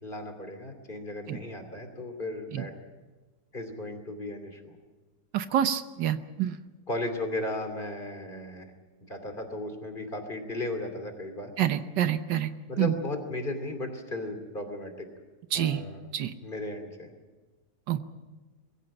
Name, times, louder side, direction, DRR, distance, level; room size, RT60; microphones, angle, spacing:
voice 1, 0.0-2.7 3.5-4.8 6.9-8.7 9.1-11.5 12.7-15.1 15.5-16.1 16.4-17.1, left 1 dB, 30° left, 6 dB, 2.9 m, -35 dB
voice 2, 5.3-6.6 11.6-12.5 12.8-12.9 15.5-15.8 16.1-16.3 17.9-18.0, right 10 dB, 75° right, 10 dB, 1.5 m, -27 dB
22.5 x 16.0 x 8.8 m, 1.3 s
omnidirectional pair, 1.9 m